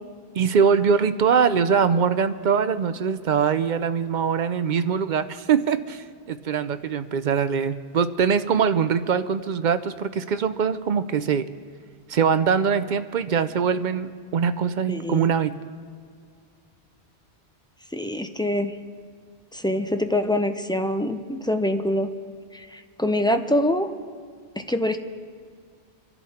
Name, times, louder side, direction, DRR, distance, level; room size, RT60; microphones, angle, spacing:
voice 1, 0.3-11.5 12.1-15.5, right 6 dB, 55° right, 11 dB, 0.6 m, -22 dB
voice 2, 14.9-15.3 17.9-18.7 19.5-22.1 22.5-23.9 24.6-25.0, left 1 dB, 5° left, 6 dB, 0.3 m, -25 dB
25.0 x 11.0 x 4.3 m, 2.1 s
omnidirectional pair, 1.1 m